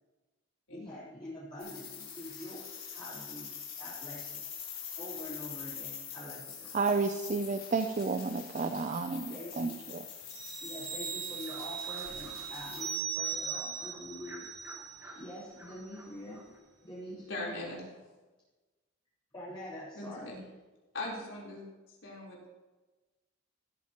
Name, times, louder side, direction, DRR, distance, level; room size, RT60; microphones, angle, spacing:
voice 1, 0.7-2.7 2.9-3.5 3.8-4.5 5.0-6.7 9.3-9.7 10.6-14.4 15.2-16.4 16.8-17.5 19.3-20.4, left 1 dB, 25° left, -13 dB, 3.7 m, -45 dB
sound 1, 1.6-12.9, left 7 dB, 45° left, 3.4 m, -44 dB
voice 2, 6.7-10.1, right 4 dB, 35° right, 7 dB, 0.4 m, -31 dB
sound 2, 10.3-15.4 15.7-15.9, right 8 dB, 55° right, 1.2 m, -39 dB
sound 3, 11.3-16.6, right 1 dB, 15° right, 1.5 m, -53 dB
voice 3, 17.3-17.8 19.9-20.4 20.9-21.6 22.0-22.5, left 2 dB, 75° left, -4 dB, 3.8 m, -39 dB
16.0 x 8.9 x 3.0 m, 1.2 s
head